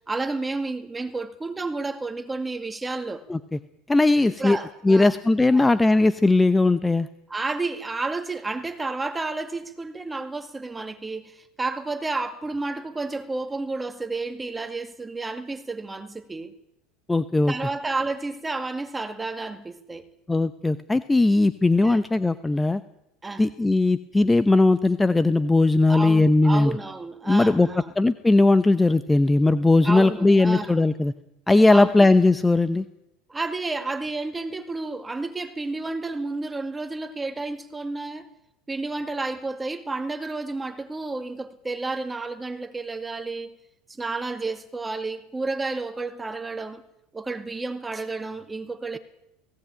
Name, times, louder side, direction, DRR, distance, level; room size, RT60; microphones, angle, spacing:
voice 1, 0.1-3.2 4.2-5.1 5.5-5.7 7.3-16.5 17.5-20.0 21.8-22.0 23.2-23.4 25.9-27.9 29.8-30.8 31.7-32.1 33.3-38.3 38.7-43.6 43.9-46.8 47.1-49.0, right 3 dB, 15° right, 2.4 m, -31 dB
voice 2, 3.9-4.6 4.8-7.1 17.1-17.5 20.3-22.8 23.4-26.7 27.2-27.7 28.0-31.1 31.5-32.8, left 2 dB, 10° left, 0.9 m, -19 dB
18.0 x 17.5 x 8.9 m
hypercardioid pair, 100°, 0 cm